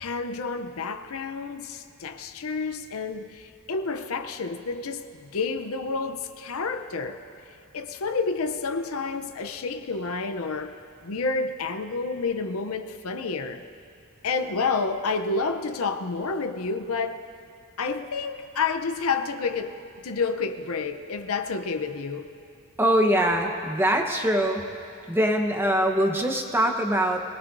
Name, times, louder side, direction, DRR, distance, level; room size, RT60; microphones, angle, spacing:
voice 1, 0.0-7.2 7.7-13.6 14.2-17.2 17.8-22.3, left 4 dB, 65° left, 0.6 m, -29 dB
voice 2, 22.8-24.7 25.1-27.2, right 1 dB, 10° right, 1.0 m, -23 dB
24.5 x 18.5 x 2.6 m
head